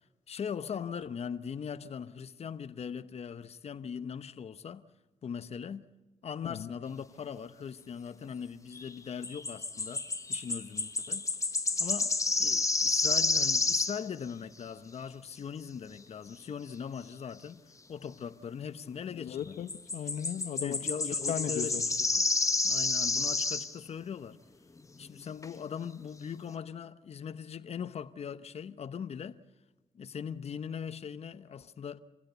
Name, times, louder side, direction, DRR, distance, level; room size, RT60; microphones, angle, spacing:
voice 1, 0.3-4.8 5.2-5.9 6.2-11.2 11.8-17.6 17.9-19.6 20.6-21.8 22.1-22.2 22.6-24.4 25.0-29.4 29.9-32.0, left 7 dB, 55° left, 1.0 m, -40 dB
sound 1, 8.8-8.9 9.2-14.0 19.7-23.7 25.0-25.1 25.4-25.5, left 3 dB, 25° left, 1.4 m, -30 dB
voice 2, 19.1-20.8 21.3-21.8, left 10 dB, 85° left, 0.9 m, -36 dB
27.0 x 16.0 x 8.1 m
cardioid pair, 70°, 12 cm